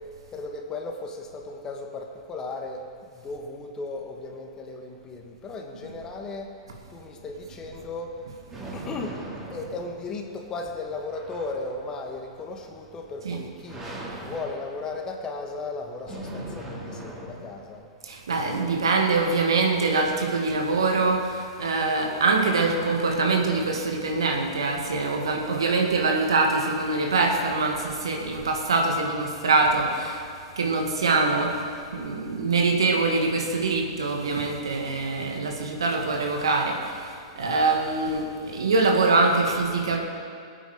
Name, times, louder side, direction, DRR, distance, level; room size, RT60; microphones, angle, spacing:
voice 1, 0.3-2.8 3.1-6.5 6.9-8.2 8.7-13.9 14.2-17.9, left 3 dB, 25° left, 3 dB, 1.7 m, -36 dB
sound 1, 7.4-17.8, right 1 dB, 20° right, 3.6 m, -41 dB
voice 2, 18.0-30.3 30.6-40.0, right 3 dB, 75° right, 1 dB, 2.1 m, -24 dB
21.5 x 8.9 x 5.0 m, 2.3 s
figure-of-eight pair, 100°, 3 cm